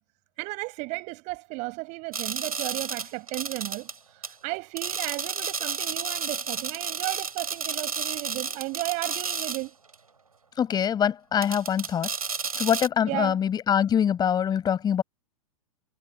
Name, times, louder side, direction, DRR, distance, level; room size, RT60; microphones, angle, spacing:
voice 1, 0.4-9.7 13.1-13.4, right 26 dB, 40° right, 6.8 m, -34 dB
sound 1, 2.1-4.0 4.2-4.3 4.8-9.7 9.9-10.0 11.4-12.9, right 5 dB, 80° right, 6.8 m, -32 dB
voice 2, 10.6-12.1 12.6-15.0, left 8 dB, 20° left, 6.0 m, -24 dB
figure-of-eight pair, 100°, 18 cm